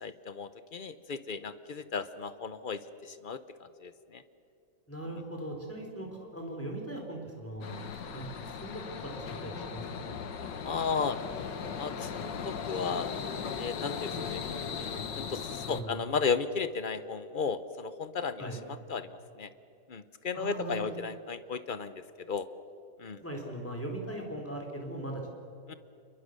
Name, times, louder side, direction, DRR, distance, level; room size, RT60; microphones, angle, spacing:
voice 1, 0.0-4.2 10.6-11.2 11.8-13.1 13.6-14.4 15.1-19.5 19.9-22.5 23.0-23.2 25.7-25.8, left 5 dB, 45° left, 12 dB, 0.7 m, -35 dB
voice 2, 4.9-8.2 8.6-10.2 15.7-16.0 18.4-18.6 20.3-20.9 23.2-25.2, right 1 dB, 5° left, 1 dB, 4.0 m, -39 dB
sound 1, 7.6-15.8, left 6 dB, 90° left, 2.0 m, -38 dB
28.5 x 22.0 x 6.7 m, 2.7 s
omnidirectional pair, 1.9 m